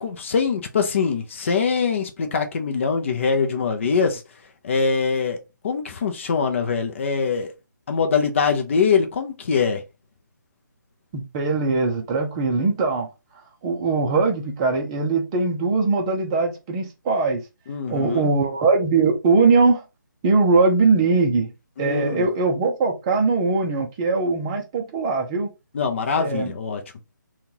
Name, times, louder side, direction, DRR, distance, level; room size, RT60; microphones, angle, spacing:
voice 1, 0.0-4.2 4.6-7.5 7.9-9.8 17.7-18.3 21.8-22.3 25.7-26.8, left 5 dB, 40° left, 0.6 m, -23 dB
voice 2, 11.1-13.1 13.6-17.4 17.9-19.8 20.2-21.5 21.8-25.5 26.1-26.5, right 4 dB, 15° right, 0.6 m, -21 dB
3.7 x 2.3 x 2.8 m
figure-of-eight pair, 160°, 11 cm